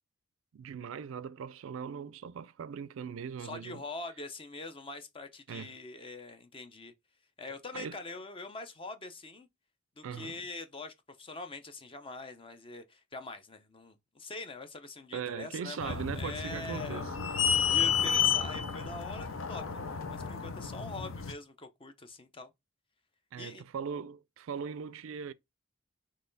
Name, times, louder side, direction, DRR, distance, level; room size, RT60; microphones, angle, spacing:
voice 1, 0.5-3.8 5.5-5.8 7.7-8.0 10.0-10.4 15.1-17.1 23.3-25.3, right 6 dB, 70° right, 0.4 m, -40 dB
voice 2, 3.4-6.9 7.4-9.5 10.0-17.1 17.5-22.5 23.4-23.6, left 3 dB, 25° left, 0.6 m, -44 dB
sound 1, 15.8-21.3, left 7 dB, 70° left, 0.6 m, -31 dB
4.0 x 3.1 x 3.9 m
head